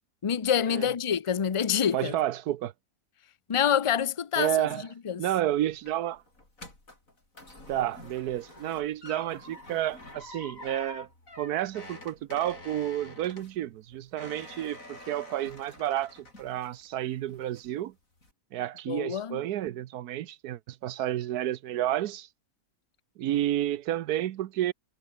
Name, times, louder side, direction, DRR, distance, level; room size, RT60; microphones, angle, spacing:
voice 1, 0.2-2.1 3.5-4.6 5.0-5.2 18.9-19.4, left 8 dB, 45° left, 0.4 m, -26 dB
voice 2, 1.9-2.7 4.4-4.9 5.2-6.2 7.7-11.1 11.4-17.9 18.5-22.3 23.2-24.7, right 12 dB, 85° right, 1.3 m, -30 dB
sound 1, 5.4-17.0 17.3-17.8 18.2-18.3, left 2 dB, 60° left, 7.5 m, -47 dB
omnidirectional pair, 1.6 m